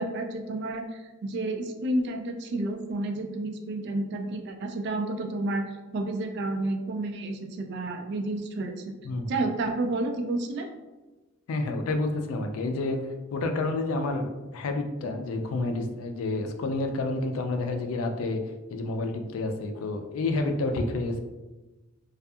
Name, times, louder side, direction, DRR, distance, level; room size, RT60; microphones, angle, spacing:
voice 1, 0.0-5.7 5.9-8.9 9.3-10.7, right 2 dB, 55° right, 5 dB, 0.3 m, -30 dB
voice 2, 11.5-13.0 13.3-18.4 18.7-21.2, left 2 dB, 85° left, 5 dB, 0.3 m, -29 dB
2.6 x 2.3 x 2.3 m, 1.1 s
head